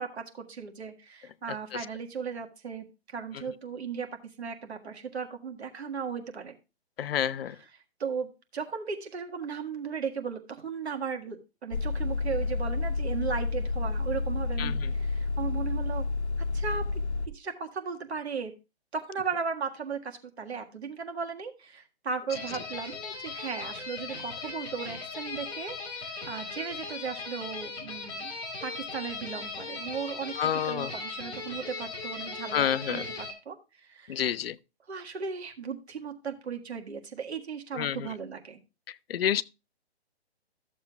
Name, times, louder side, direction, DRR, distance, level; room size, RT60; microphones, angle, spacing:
voice 1, 0.0-4.1 4.4-6.6 7.4-16.1 16.5-17.0 17.3-18.5 18.9-28.3 28.6-34.3 34.9-38.6, right 6 dB, 75° right, 1.7 m, -36 dB
voice 2, 7.0-7.5 14.6-14.7 30.4-30.9 32.5-33.0 34.1-34.5 37.8-38.0 39.1-39.4, left 9 dB, 60° left, 0.6 m, -28 dB
sound 1, 11.7-17.3, left 3 dB, 80° left, 1.1 m, -30 dB
sound 2, 22.3-33.3, left 3 dB, 15° left, 2.3 m, -38 dB
14.0 x 7.2 x 2.3 m
hypercardioid pair, 145°, 33 cm